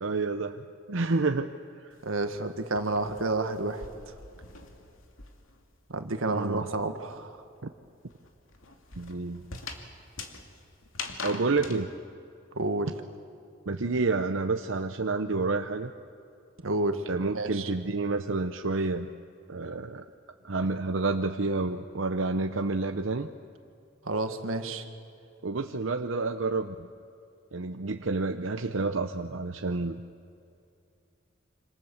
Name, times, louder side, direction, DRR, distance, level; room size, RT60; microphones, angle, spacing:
voice 1, 0.0-0.6 0.9-1.5 1.8-1.9 6.3-6.7 7.6-7.7 9.0-9.4 11.2-11.9 13.7-15.9 17.1-19.1 19.5-20.0 20.4-23.3 25.4-26.9 27.5-30.0, right 3 dB, 70° right, 6 dB, 0.8 m, -29 dB
sound 1, 1.9-5.7 5.9-11.8, left 4 dB, 85° left, 2.5 m, -43 dB
voice 2, 2.0-3.9 5.9-7.4 12.5-12.9 16.6-17.0 17.3-17.7 24.0-24.8, right 2 dB, 90° right, 7 dB, 1.9 m, -30 dB
26.5 x 26.5 x 7.2 m, 2.6 s
head